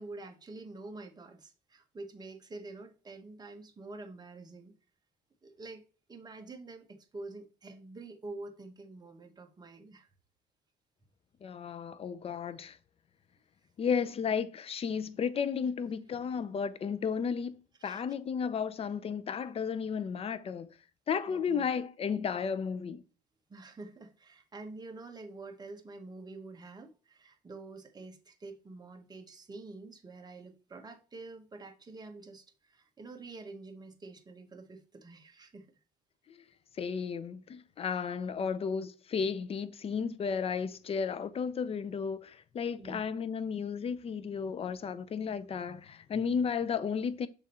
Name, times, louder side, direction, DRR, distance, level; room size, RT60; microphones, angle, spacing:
voice 1, 0.0-4.7 5.4-5.8 6.1-10.1 17.8-18.0 21.3-21.7 23.5-35.7 38.3-38.5 42.8-43.1, right 3 dB, 25° right, 1.2 m, -47 dB
voice 2, 11.4-12.8 13.8-20.7 21.1-23.0 36.8-47.3, left 6 dB, 35° left, 0.5 m, -33 dB
6.4 x 3.7 x 4.3 m
cardioid pair, 110°, 17 cm